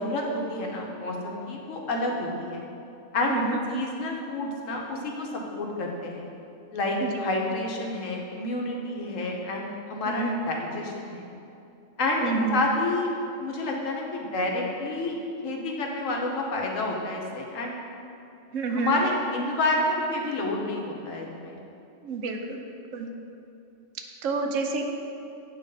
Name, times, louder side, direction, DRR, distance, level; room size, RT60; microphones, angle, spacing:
voice 1, 0.0-2.6 3.1-3.4 3.7-6.3 6.7-11.2 12.0-13.1 13.4-15.2 15.4-17.8 18.7-21.6, left 2 dB, 80° left, 0 dB, 1.3 m, -29 dB
voice 2, 3.3-3.6 7.0-7.2 10.1-10.5 12.2-12.6 18.5-19.0 22.0-22.6 22.9-23.1 24.2-24.8, right 4 dB, 85° right, 3 dB, 1.1 m, -28 dB
9.4 x 3.2 x 5.2 m, 2.7 s
omnidirectional pair, 1.3 m